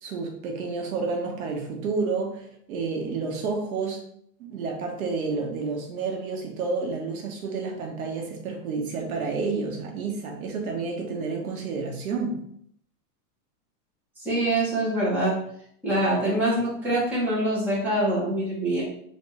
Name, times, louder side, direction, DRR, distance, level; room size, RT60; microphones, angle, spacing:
voice 1, 0.0-4.0 4.5-12.4, right 4 dB, 65° right, 2 dB, 1.2 m, -30 dB
voice 2, 14.2-15.4 15.8-18.8, right 1 dB, 5° right, -10 dB, 1.2 m, -24 dB
3.5 x 3.5 x 4.1 m, 0.68 s
supercardioid pair, 170°, 46 cm